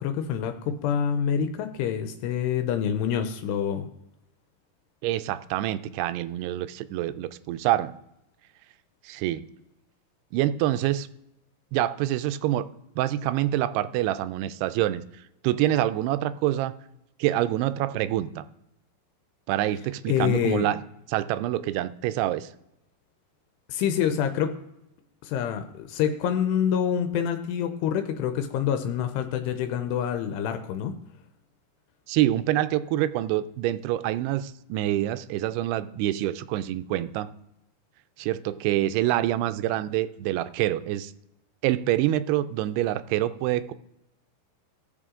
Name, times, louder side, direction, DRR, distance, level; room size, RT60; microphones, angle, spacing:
voice 1, 0.0-3.9 20.1-20.7 23.7-24.5 25.2-30.9, left 8 dB, 85° left, 8 dB, 2.8 m, -26 dB
voice 2, 5.0-7.9 9.0-9.4 10.3-11.1 11.7-12.7 13.0-15.0 15.4-16.8 17.2-18.4 19.5-20.8 21.1-22.5 32.1-37.3 38.2-41.1 41.6-43.7, right 13 dB, 85° right, 13 dB, 2.6 m, -26 dB
18.5 x 6.8 x 3.7 m, 0.86 s
omnidirectional pair, 4.8 m